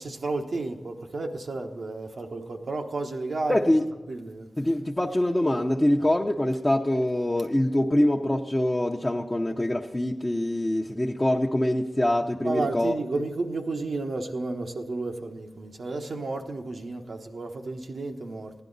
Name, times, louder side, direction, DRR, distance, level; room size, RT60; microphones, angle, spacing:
voice 1, 0.0-3.6 4.1-4.5 12.4-18.5, right 3 dB, 80° right, 1.1 m, -32 dB
voice 2, 3.5-3.9 4.6-13.0, left 1 dB, 25° left, 0.8 m, -24 dB
15.0 x 10.5 x 4.0 m
cardioid pair, 45°, 0 cm